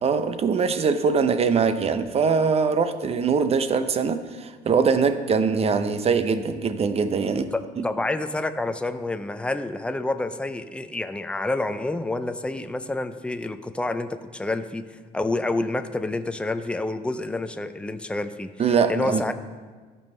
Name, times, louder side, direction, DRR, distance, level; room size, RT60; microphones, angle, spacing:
voice 1, 0.0-7.9 18.6-19.2, right 5 dB, 35° right, 10 dB, 0.7 m, -22 dB
voice 2, 7.5-19.3, left 2 dB, 5° left, 9 dB, 0.5 m, -28 dB
13.5 x 5.6 x 5.5 m, 1.5 s
cardioid pair, 110°, 17 cm